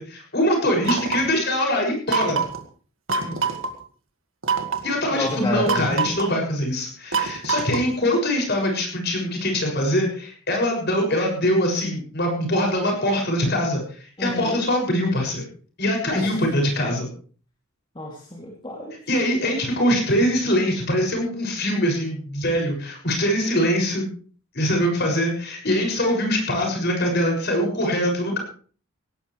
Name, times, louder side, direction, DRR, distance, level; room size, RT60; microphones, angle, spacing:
voice 1, 0.0-2.4 4.8-15.4 15.8-17.1 19.1-24.1 24.5-28.4, equal, 50° left, 1 dB, 6.9 m, -23 dB
sound 1, 0.8-1.4 2.1-2.6 3.1-3.7 4.4-4.9 5.7-6.3 7.1-8.0, right 5 dB, 70° right, 2.0 m, -25 dB
voice 2, 5.1-5.8 14.2-14.6 16.1-16.3 17.9-18.9, left 1 dB, 25° left, -2 dB, 2.9 m, -28 dB
19.5 x 18.0 x 3.4 m, 0.42 s
head